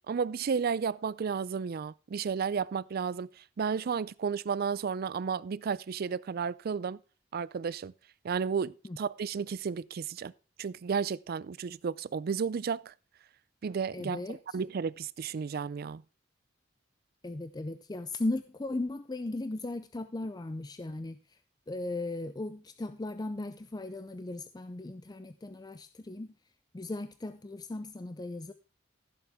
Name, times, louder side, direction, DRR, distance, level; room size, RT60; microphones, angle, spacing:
voice 1, 0.1-3.3 3.6-7.0 7.3-7.9 8.2-10.3 10.6-12.9 13.6-16.0, right 6 dB, 55° right, 0.4 m, -32 dB
voice 2, 13.9-14.4 17.2-21.2 21.7-26.3 26.7-28.5, left 2 dB, 20° left, 0.5 m, -37 dB
15.0 x 7.1 x 3.5 m
head